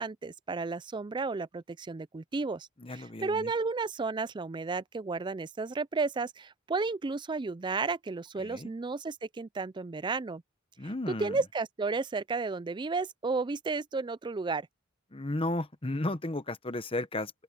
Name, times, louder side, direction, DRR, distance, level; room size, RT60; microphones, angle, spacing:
voice 1, 0.0-10.4 11.1-14.7, right 4 dB, 20° right, 0.4 m, -33 dB
voice 2, 2.8-3.5 8.4-8.7 10.8-11.4 15.1-17.3, left 1 dB, 25° left, 1.1 m, -34 dB
open air
head